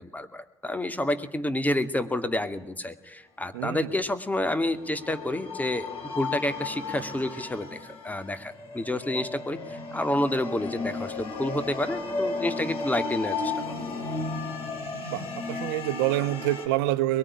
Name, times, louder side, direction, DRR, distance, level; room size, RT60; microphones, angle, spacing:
voice 1, 0.0-7.8 8.0-13.7, left 1 dB, 10° left, 10 dB, 2.4 m, -29 dB
voice 2, 3.5-3.9 15.1-17.2, right 15 dB, 70° right, 12 dB, 1.0 m, -27 dB
sound 1, 4.3-16.7, left 4 dB, 45° left, 7.8 m, -34 dB
23.0 x 22.5 x 9.9 m, 0.84 s
hypercardioid pair, 60°, 13 cm